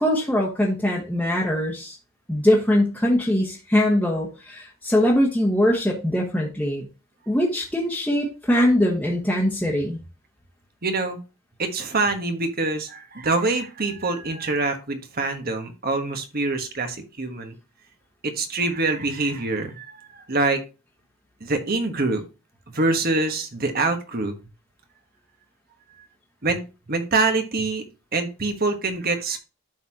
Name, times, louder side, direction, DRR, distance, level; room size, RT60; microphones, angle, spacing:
voice 1, 0.0-2.0 2.3-6.9 7.3-10.0, left 1 dB, 5° left, -3 dB, 1.3 m, -22 dB
voice 2, 10.8-11.2 11.6-17.6 18.2-20.6 21.4-22.2 22.7-24.3 26.4-26.6 26.9-27.8 28.1-29.4, right 3 dB, 45° right, 6 dB, 1.3 m, -25 dB
12.0 x 4.1 x 2.8 m, 0.30 s
head